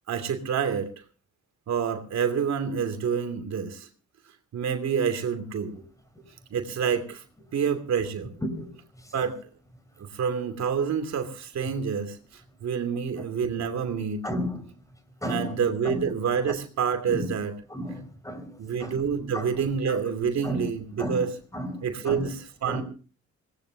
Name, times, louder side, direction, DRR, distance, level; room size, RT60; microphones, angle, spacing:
voice 1, 0.1-0.9 1.7-3.9 4.5-5.8 6.5-7.2 7.5-8.3 9.1-9.4 10.0-14.2 15.2-17.5 18.6-21.3 21.8-22.8, right 7 dB, 60° right, 6 dB, 2.8 m, -28 dB
voice 2, 14.2-14.6 15.2-16.0 17.1-17.3 17.7-19.0 19.3-19.6 19.9-20.0 20.4-20.7 21.0-22.3 22.7-22.8, equal, 10° left, 10 dB, 4.6 m, -33 dB
23.5 x 19.0 x 2.8 m, 0.37 s
cardioid pair, 90°, 30 cm